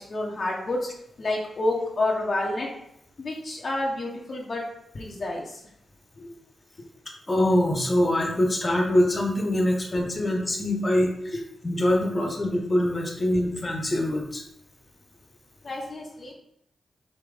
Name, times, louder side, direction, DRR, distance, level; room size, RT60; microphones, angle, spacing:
voice 1, 0.1-0.8 1.2-2.7 3.2-4.6 4.9-5.4 8.4-8.5 15.6-16.3, left 2 dB, 55° left, -2 dB, 0.9 m, -28 dB
voice 2, 7.3-11.4 11.6-14.4, left 1 dB, 30° left, 1 dB, 1.1 m, -24 dB
5.1 x 2.9 x 3.4 m, 0.77 s
cardioid pair, 50°, 0 cm